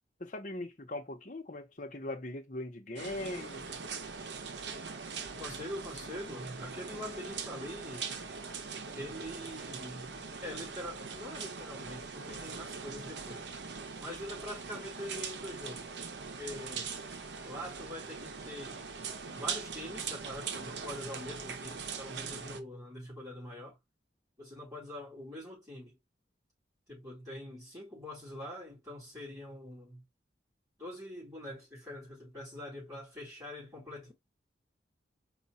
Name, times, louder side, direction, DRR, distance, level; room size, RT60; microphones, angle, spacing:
voice 1, 0.2-3.6, left 1 dB, 45° left, 1.0 m, -40 dB
sound 1, 3.0-22.6, right 5 dB, 70° right, 0.8 m, -41 dB
voice 2, 5.4-8.1 8.9-13.5 14.0-16.9 17.4-18.9 19.3-23.8 24.4-26.0 26.9-30.0 30.8-34.1, left 1 dB, 15° right, 3.6 m, -44 dB
4.8 x 2.4 x 4.2 m
head